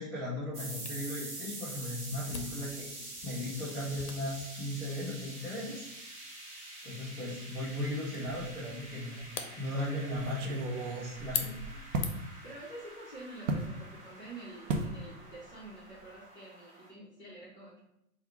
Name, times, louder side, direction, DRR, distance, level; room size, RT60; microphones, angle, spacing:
voice 1, 0.0-2.9 3.2-5.9 6.2-6.3 6.8-9.3 9.6-11.8, left 1 dB, 5° left, -13 dB, 0.4 m, -37 dB
sound 1, 0.5-16.9, right 1 dB, 15° right, 0.9 m, -47 dB
Camera, 0.9-12.5, left 6 dB, 80° left, 0.8 m, -45 dB
sound 2, 8.4-8.8 9.2-9.3 10.1-12.2 13.5-13.7 14.7-15.0 15.3-15.6 15.9-16.0, right 2 dB, 55° right, 0.7 m, -35 dB
voice 2, 12.4-17.8, right 2 dB, 25° left, -9 dB, 1.2 m, -48 dB
3.6 x 2.4 x 4.3 m, 0.82 s
hypercardioid pair, 120°, 45 cm